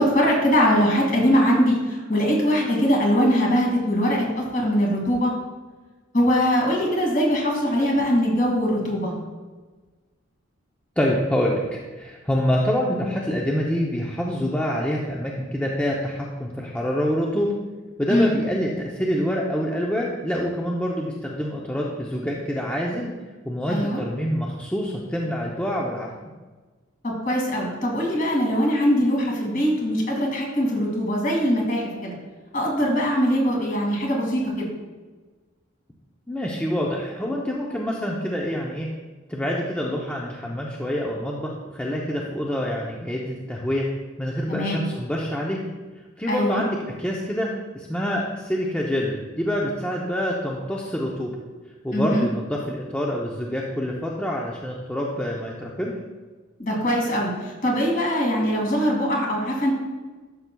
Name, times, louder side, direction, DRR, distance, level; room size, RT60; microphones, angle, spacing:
voice 1, 0.0-5.3 6.1-9.1 18.1-18.4 23.7-24.0 27.0-32.1 32.5-34.7 44.5-44.8 46.3-46.6 51.9-52.3 56.6-59.7, equal, 40° left, -1 dB, 2.2 m, -22 dB
voice 2, 11.0-17.5 18.0-23.1 23.4-26.1 36.3-38.9 39.3-43.9 44.2-45.6 46.2-51.3 51.8-55.9, equal, 5° left, -3 dB, 0.6 m, -26 dB
11.5 x 6.7 x 2.3 m, 1.3 s
head